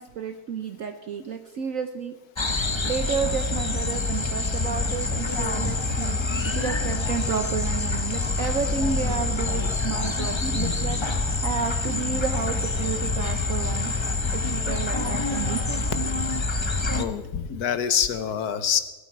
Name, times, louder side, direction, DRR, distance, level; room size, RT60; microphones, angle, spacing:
voice 1, 0.0-2.1 2.8-13.9 14.3-15.6, right 6 dB, 60° right, 6 dB, 1.1 m, -31 dB
sound 1, 2.4-17.0, left 3 dB, 25° left, 0.7 m, -26 dB
voice 2, 16.9-18.8, left 8 dB, 70° left, 11 dB, 1.5 m, -25 dB
20.0 x 12.5 x 4.6 m, 1.1 s
omnidirectional pair, 1.8 m